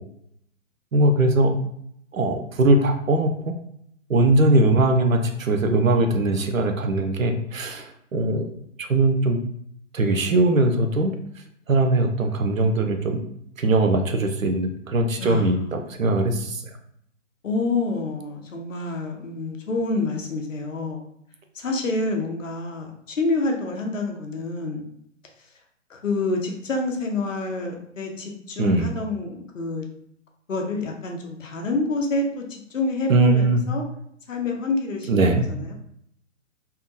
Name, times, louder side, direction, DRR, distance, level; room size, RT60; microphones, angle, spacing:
voice 1, 0.9-1.5 2.1-3.5 4.1-8.5 8.8-9.4 9.9-11.2 11.7-13.2 13.6-16.6 28.6-28.9 33.1-33.6 35.1-35.4, right 2 dB, 90° right, 5 dB, 0.6 m, -20 dB
voice 2, 15.2-15.5 17.4-21.0 21.5-24.8 25.9-29.9 30.5-33.8 34.3-35.7, left 3 dB, 75° left, 2 dB, 0.7 m, -27 dB
2.8 x 2.2 x 2.6 m, 0.71 s
figure-of-eight pair, 135°, 39 cm